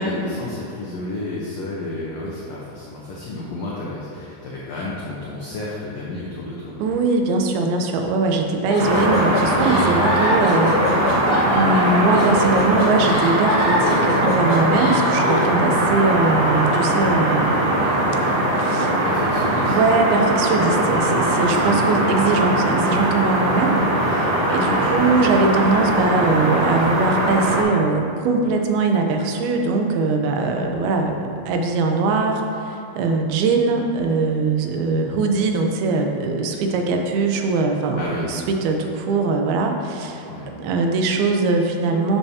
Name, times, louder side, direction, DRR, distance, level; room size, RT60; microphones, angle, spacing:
voice 1, 0.0-6.8 19.0-19.8 21.3-21.9 24.7-24.9 38.0-38.3 40.3-40.5, left 2 dB, 90° left, -6 dB, 1.5 m, -31 dB
voice 2, 6.8-18.2 18.6-18.9 19.6-40.3 40.6-42.2, right 3 dB, 85° right, 3 dB, 2.6 m, -21 dB
sound 1, 8.7-15.5, left 1 dB, 50° left, 1.7 m, -24 dB
sound 2, 8.8-27.6, right 1 dB, 65° right, 2.3 m, -20 dB
10.5 x 7.1 x 2.8 m, 2.6 s
omnidirectional pair, 4.4 m